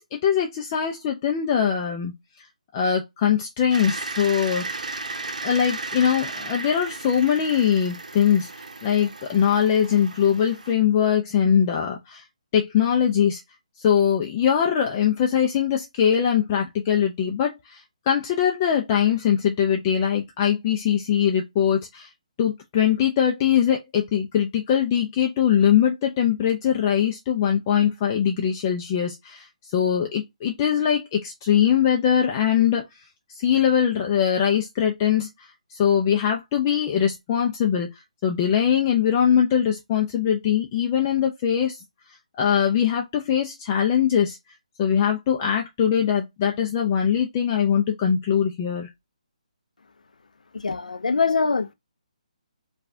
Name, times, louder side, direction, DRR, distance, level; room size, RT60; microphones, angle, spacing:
voice 1, 0.0-2.1 2.7-4.9 5.4-12.2 12.5-13.4 13.8-22.1 22.4-29.5 29.7-32.8 33.3-37.9 38.2-41.8 42.4-44.4 44.8-48.9, left 8 dB, 25° left, 0.5 m, -22 dB
sound 1, 3.7-10.7, right 3 dB, 90° right, 0.7 m, -35 dB
voice 2, 50.5-51.7, left 4 dB, 85° left, 0.5 m, -23 dB
4.6 x 2.4 x 2.6 m
hypercardioid pair, 155°, 4 cm